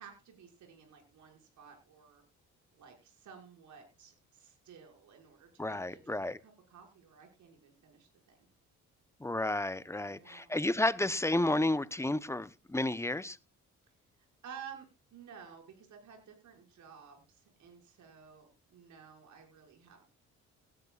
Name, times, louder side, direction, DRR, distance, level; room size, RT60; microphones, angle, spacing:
voice 1, 0.0-2.2 2.7-8.5 10.0-10.5 14.2-20.0, right 7 dB, 70° right, 2 dB, 5.8 m, -54 dB
voice 2, 5.6-6.4 9.2-13.4, left 1 dB, 10° left, 16 dB, 0.7 m, -31 dB
18.0 x 12.5 x 2.4 m, 0.27 s
cardioid pair, 90°, 30 cm